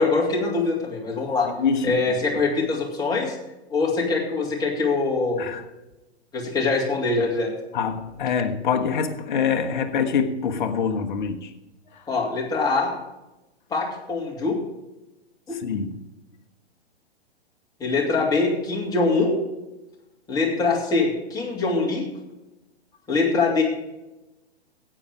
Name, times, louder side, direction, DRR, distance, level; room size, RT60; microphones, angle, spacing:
voice 1, 0.0-1.5 1.8-3.3 3.7-5.5 6.3-7.5 12.1-12.9 13.7-14.6 15.5-15.6 17.8-19.3 20.3-22.1 23.1-23.6, left 3 dB, 10° left, 2.8 m, -23 dB
voice 2, 1.4-2.0 5.4-5.6 7.7-11.5 11.9-12.0 15.6-16.0, left 6 dB, 45° left, 1.3 m, -25 dB
13.0 x 8.9 x 5.0 m
figure-of-eight pair, 110°, 32 cm